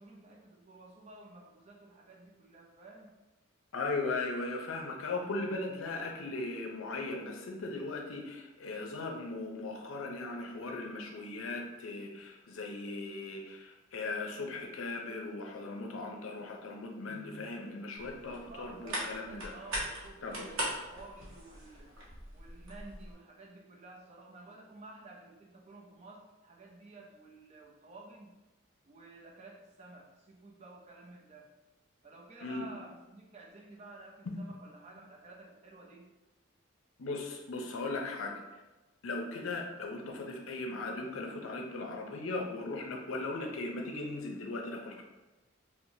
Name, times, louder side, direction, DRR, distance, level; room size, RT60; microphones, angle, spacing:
voice 1, 0.0-3.1 18.3-21.9 22.3-28.4 28.8-31.5 32.0-36.1, right 3 dB, 30° right, -1 dB, 0.5 m, -52 dB
voice 2, 3.7-19.5 20.2-20.5 32.4-32.7 37.0-38.4 39.0-45.0, left 3 dB, 85° left, 2 dB, 0.6 m, -38 dB
sound 1, 18.0-23.1, equal, 85° right, 0.9 m, -40 dB
4.4 x 2.1 x 2.7 m, 1.1 s
head